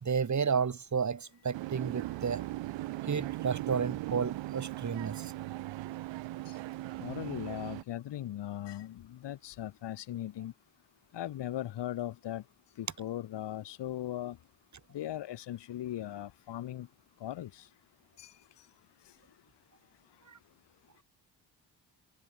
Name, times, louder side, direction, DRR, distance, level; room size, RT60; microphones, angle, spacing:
voice 1, 0.0-2.4 3.1-5.3, right 6 dB, 35° right, 2.4 m, -32 dB
sound 1, 1.5-7.8, right 17 dB, 70° right, 1.0 m, -38 dB
voice 2, 7.0-10.5 11.1-12.4 12.8-14.4 14.9-16.9 17.2-17.6 18.2-18.3, left 12 dB, 60° left, 1.7 m, -38 dB
supercardioid pair, 55°, 46 cm